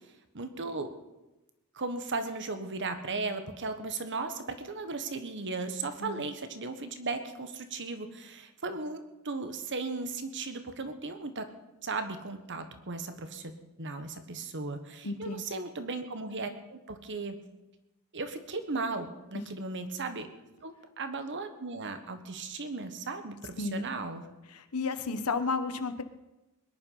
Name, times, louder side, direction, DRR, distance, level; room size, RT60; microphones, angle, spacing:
voice 1, 0.3-0.9 1.7-11.5 11.8-13.5 13.8-17.4 18.1-20.3 20.6-24.3, right 3 dB, 55° right, 9 dB, 1.4 m, -36 dB
voice 2, 6.0-6.3 15.0-15.4 23.6-23.9 24.5-26.0, left 4 dB, 75° left, 9 dB, 1.1 m, -33 dB
21.0 x 10.5 x 5.6 m, 0.99 s
head